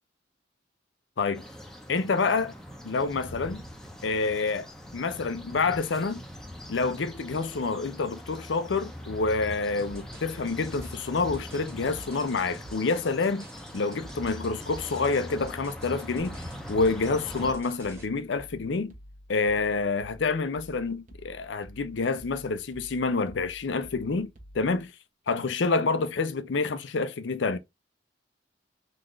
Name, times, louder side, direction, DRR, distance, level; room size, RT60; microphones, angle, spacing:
sound 1, 1.3-17.5, equal, 5° left, 0.6 m, -42 dB
voice 1, 1.9-2.5 2.8-3.6 4.0-4.7 4.9-6.2 6.7-13.4 13.7-16.4 16.7-18.9 19.3-24.9 25.3-27.6, left 4 dB, 75° left, 0.5 m, -28 dB
sound 2, 9.8-18.1, right 1 dB, 15° right, 1.2 m, -48 dB
sound 3, 17.3-24.9, equal, 40° right, 0.8 m, -50 dB
4.0 x 2.5 x 3.1 m
head